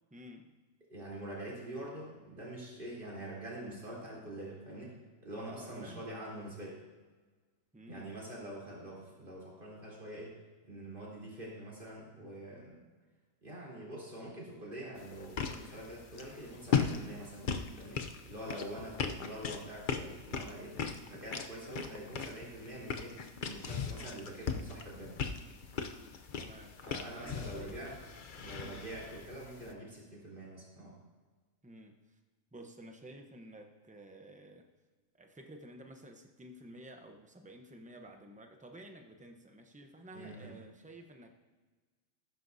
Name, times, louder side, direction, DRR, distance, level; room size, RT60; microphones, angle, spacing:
voice 1, 0.1-0.5 5.6-6.1 7.7-8.1 26.4-26.8 27.2-27.8 28.5-28.9 31.6-32.2 32.5-34.7 35.1-41.3, right 1 dB, 5° right, 4 dB, 0.7 m, -52 dB
voice 2, 0.9-4.9 5.2-6.8 7.9-10.3 10.7-12.8 13.4-20.8 21.1-23.2 23.4-25.2 26.8-27.9 28.4-30.9 40.1-40.5, right 1 dB, 40° right, -6 dB, 3.9 m, -45 dB
sound 1, 15.0-29.7, left 6 dB, 50° left, 0.7 m, -38 dB
15.0 x 12.5 x 2.7 m, 1.3 s
omnidirectional pair, 1.5 m